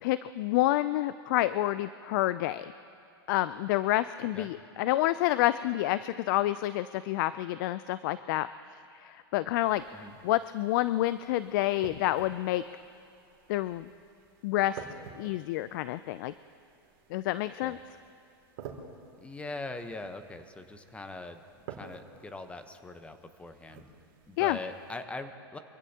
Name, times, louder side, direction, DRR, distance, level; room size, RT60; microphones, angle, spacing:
voice 1, 0.0-2.7 3.3-8.5 8.9-9.8 10.2-12.6 13.5-13.9 14.4-14.9 15.2-16.3 17.1-17.8 24.4-24.6, left 15 dB, 55° left, 15 dB, 0.4 m, -28 dB
sound 1, 9.6-25.0, right 6 dB, 55° right, 2.5 m, -51 dB
voice 2, 19.2-21.4 21.7-23.8 24.3-25.6, left 2 dB, 10° left, 8 dB, 1.0 m, -41 dB
25.0 x 15.5 x 2.9 m, 2.6 s
hypercardioid pair, 120°, 13 cm